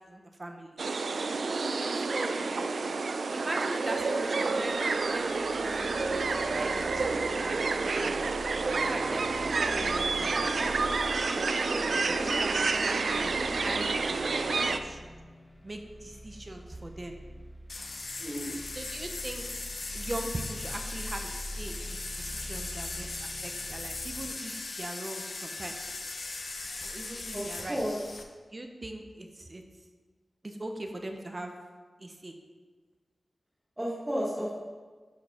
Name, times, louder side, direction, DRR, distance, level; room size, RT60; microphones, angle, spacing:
voice 1, 0.1-0.8 2.1-2.4 3.3-4.8 5.1-8.3 8.9-10.6 11.4-15.1 15.6-17.2 18.7-19.5 19.9-25.8 26.8-27.8 28.5-29.6 30.4-31.5 32.0-32.3, right 1 dB, 30° right, 4 dB, 0.8 m, -40 dB
sound 1, 0.8-14.8, right 4 dB, 75° right, 0.4 m, -29 dB
sound 2, 4.5-24.3, equal, 20° left, 0.8 m, -45 dB
voice 2, 11.9-12.2 18.2-18.6 27.3-28.0 33.8-34.5, equal, 15° right, -6 dB, 1.3 m, -33 dB
sound 3, 17.7-28.2, left 3 dB, 60° left, 0.7 m, -39 dB
10.5 x 4.6 x 3.6 m, 1.4 s
wide cardioid pair, 95°, 0 cm